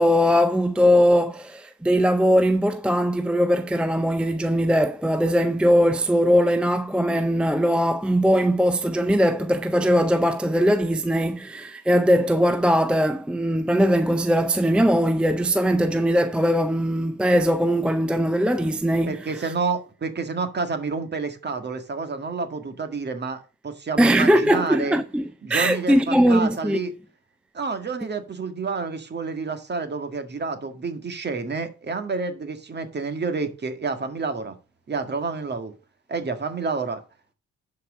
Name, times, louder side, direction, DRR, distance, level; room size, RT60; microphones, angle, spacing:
voice 1, 0.0-19.5 24.0-26.8, equal, 5° right, 0.5 m, -20 dB
voice 2, 19.1-25.0 25.4-26.9 27.5-34.6 34.9-35.7 36.1-37.0, right 4 dB, 35° right, 1.8 m, -29 dB
11.5 x 4.8 x 4.9 m
cardioid pair, 90°, 30 cm